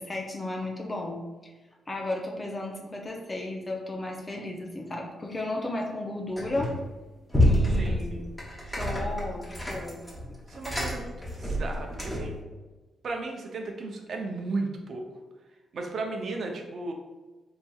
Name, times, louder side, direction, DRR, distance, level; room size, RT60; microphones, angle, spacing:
voice 1, 0.0-1.5 1.9-6.7 7.4-8.2 8.8-10.0, left 1 dB, 30° left, 0 dB, 0.5 m, -34 dB
sound 1, 6.4-6.9 7.3-12.4, left 1 dB, 10° left, 0.9 m, -28 dB
voice 2, 7.8-8.2 10.5-11.1 11.4-12.3 13.0-15.0 15.7-16.9, right 3 dB, 65° right, 2 dB, 0.6 m, -34 dB
3.9 x 2.7 x 2.3 m, 1.2 s
cardioid pair, 75°, 0 cm